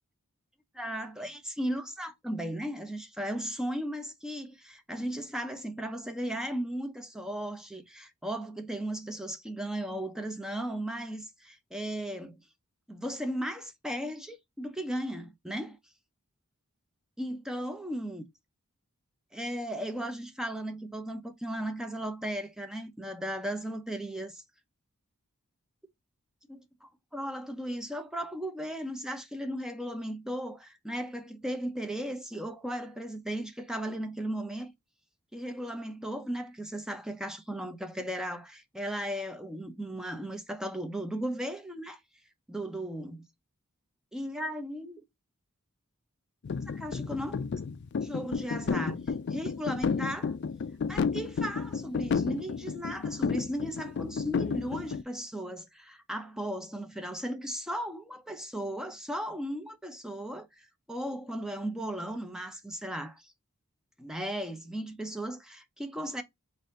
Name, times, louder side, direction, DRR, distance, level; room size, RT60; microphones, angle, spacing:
voice 1, 0.7-12.4 12.9-15.8 17.2-18.3 19.3-24.4 26.5-34.7 35.3-42.0 42.5-43.2 44.1-45.0 46.7-47.5 48.0-49.0 49.3-50.3 50.9-63.3 64.0-66.2, equal, 5° right, 0.6 m, -36 dB
sound 1, 46.4-55.0, left 5 dB, 50° left, 0.3 m, -32 dB
4.0 x 2.6 x 3.6 m
head